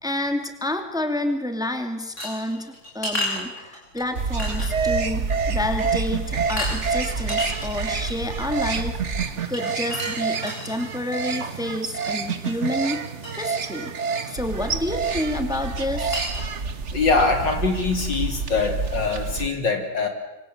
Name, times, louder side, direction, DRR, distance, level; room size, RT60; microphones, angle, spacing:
voice 1, 0.0-9.0 9.5-13.0 13.3-13.9 14.3-16.2, left 1 dB, ahead, 6 dB, 2.4 m, -29 dB
sound 1, 2.2-4.0 4.4-5.0 5.3-5.4 5.8-6.0 6.6-6.8 7.2-8.3 9.5-10.8 12.4-12.6 12.9-13.0 13.2-13.3 15.0-15.2 15.7-15.8 16.1-16.4, left 1 dB, 35° left, 7.5 m, -31 dB
sound 2, 4.2-19.5, right 5 dB, 40° right, 1.6 m, -28 dB
voice 2, 16.9-20.1, left 4 dB, 65° left, 4 dB, 3.7 m, -23 dB
27.0 x 25.5 x 8.0 m, 1.0 s
omnidirectional pair, 2.1 m